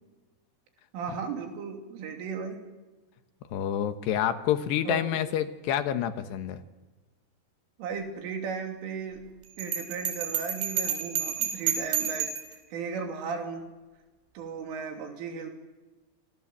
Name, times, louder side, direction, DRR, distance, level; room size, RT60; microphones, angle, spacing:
voice 1, 0.9-2.6 4.8-5.2 7.8-9.2 9.6-13.7 14.4-15.5, right 5 dB, 85° right, 4 dB, 5.6 m, -36 dB
voice 2, 3.5-6.6, left 10 dB, 70° left, 9 dB, 3.1 m, -28 dB
Bell, 9.6-12.6, right 8 dB, 60° right, 6.0 m, -30 dB
29.0 x 27.0 x 7.5 m, 1.2 s
omnidirectional pair, 5.5 m